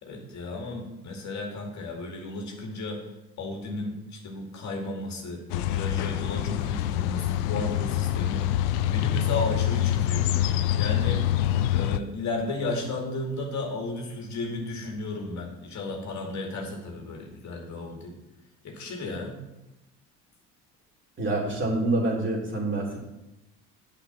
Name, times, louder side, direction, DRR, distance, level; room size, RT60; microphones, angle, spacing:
voice 1, 0.0-3.1 3.4-10.4 10.8-11.2 11.7-18.1 18.6-19.4, left 2 dB, 50° left, 1 dB, 2.3 m, -34 dB
sound 1, 5.5-12.0, left 12 dB, 75° left, 0.6 m, -26 dB
voice 2, 21.2-23.0, right 2 dB, 30° right, -3 dB, 3.4 m, -26 dB
8.2 x 5.4 x 7.3 m, 0.96 s
hypercardioid pair, 75°, 36 cm